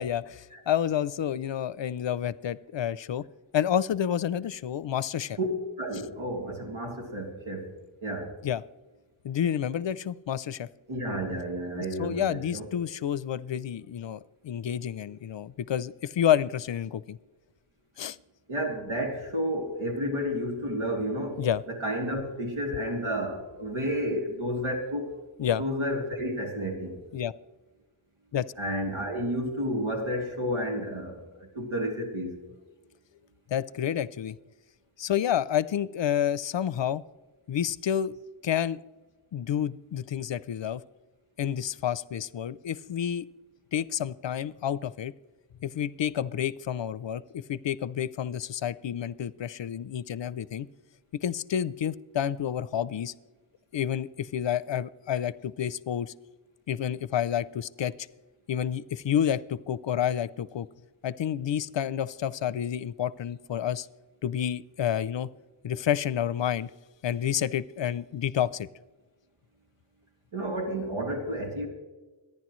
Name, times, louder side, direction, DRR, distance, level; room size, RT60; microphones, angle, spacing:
voice 1, 0.0-3.2 3.5-5.4 8.4-8.6 9.2-10.7 11.7-17.2 18.0-18.2 21.4-21.6 25.4-25.6 27.1-27.3 28.3-28.4 33.5-34.4 35.0-37.0 37.5-38.2 38.4-38.8 39.3-40.8 41.4-43.3 43.7-45.1 45.6-50.7 51.2-53.1 53.7-56.1 56.7-57.9 58.5-60.7 61.0-63.9 64.2-65.3 65.6-66.7 67.0-68.7, left 9 dB, 65° left, 18 dB, 0.6 m, -29 dB
voice 2, 5.8-7.7 8.0-8.3 10.9-12.7 18.5-25.1 25.6-27.0 28.6-32.4 70.3-71.7, equal, 85° right, 1 dB, 3.0 m, -31 dB
24.5 x 10.5 x 3.1 m, 1.2 s
wide cardioid pair, 110°, 48 cm